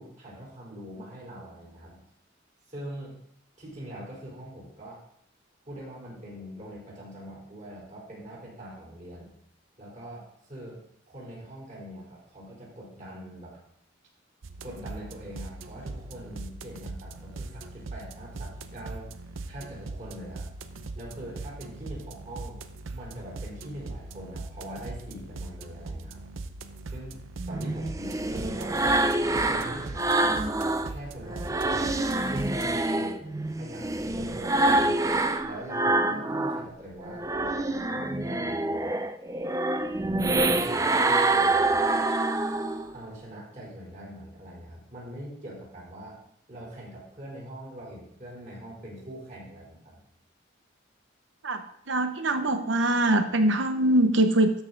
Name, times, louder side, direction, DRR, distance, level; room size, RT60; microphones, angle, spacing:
voice 1, 0.0-2.0 2.7-3.2 3.6-5.0 5.6-9.3 9.8-10.8 11.1-13.5 14.6-19.1 19.5-20.5 21.0-22.6 22.9-26.2 26.9-27.2 27.5-29.0 29.4-30.5 30.9-32.0 32.3-33.3 33.6-35.0 35.4-39.0 40.4-41.8 42.9-46.2 46.5-50.0, right 1 dB, 40° right, -5 dB, 4.2 m, -42 dB
sound 1, 14.4-32.8, right 3 dB, 85° right, 0.7 m, -40 dB
sound 2, 27.5-30.9 31.3-36.7 37.0-42.9, right 2 dB, 15° right, 0.4 m, -26 dB
voice 2, 51.9-54.5, right 1 dB, 65° right, 8 dB, 0.9 m, -23 dB
13.0 x 5.7 x 3.9 m, 0.72 s
head